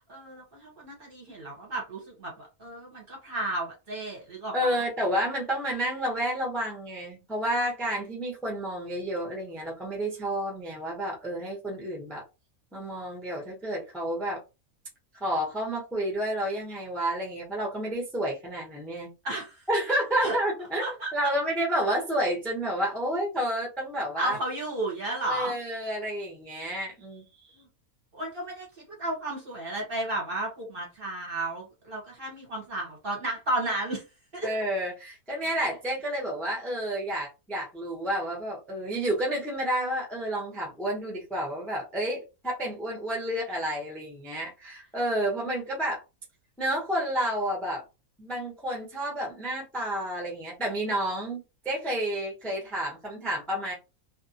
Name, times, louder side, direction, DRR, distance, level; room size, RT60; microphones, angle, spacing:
voice 1, 0.1-4.8 19.2-19.6 20.2-20.4 20.8-21.1 24.1-25.5 28.1-34.0 34.3-34.5, right 1 dB, 45° right, 0.9 m, -33 dB
voice 2, 4.5-12.2 12.7-14.4 15.2-19.1 19.7-24.4 25.3-27.6 34.4-46.0 46.6-47.8 48.2-53.7, right 1 dB, ahead, 0.5 m, -30 dB
2.5 x 2.3 x 2.7 m
omnidirectional pair, 1.6 m